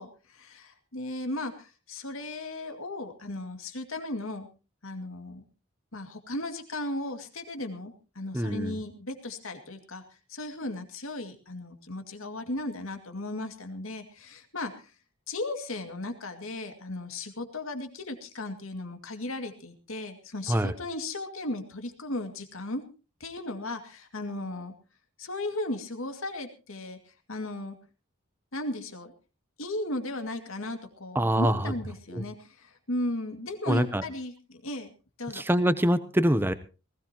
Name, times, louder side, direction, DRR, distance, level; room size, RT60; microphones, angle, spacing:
voice 1, 0.0-4.5 4.8-5.4 5.9-10.0 10.3-14.7 15.3-22.8 23.2-24.7 25.2-27.0 27.3-27.8 28.5-29.1 29.6-34.9 35.2-35.4, left 2 dB, 80° left, 6 dB, 2.3 m, -36 dB
voice 2, 8.3-8.7 20.5-20.8 31.1-31.7 32.1-32.2 33.7-34.0 35.3-36.5, right 1 dB, 10° right, 13 dB, 0.7 m, -25 dB
19.5 x 17.0 x 3.0 m, 0.32 s
head